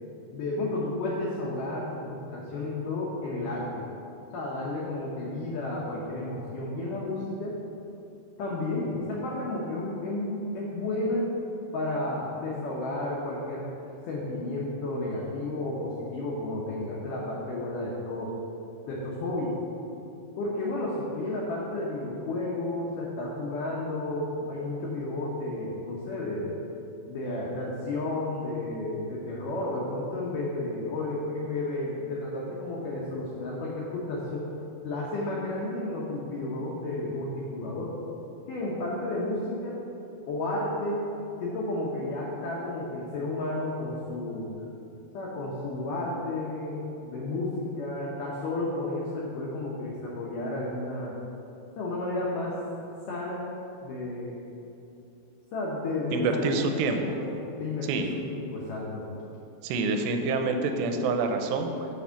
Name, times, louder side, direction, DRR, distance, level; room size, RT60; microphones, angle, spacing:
voice 1, 0.3-3.8 4.3-7.5 8.4-11.3 11.7-13.7 14.0-18.3 18.9-19.5 20.4-26.5 27.0-34.5 34.8-38.0 38.5-39.8 40.3-41.0 41.4-44.5 45.1-51.2 51.8-52.6 53.1-53.5 53.8-54.4 55.5-56.8 57.1-59.0, left 2 dB, 80° left, -4 dB, 1.9 m, -32 dB
voice 2, 56.1-57.0 57.9-58.1 59.6-61.9, right 3 dB, 85° right, 5 dB, 2.7 m, -27 dB
7.6 x 4.4 x 6.9 m, 2.9 s
omnidirectional pair, 5.0 m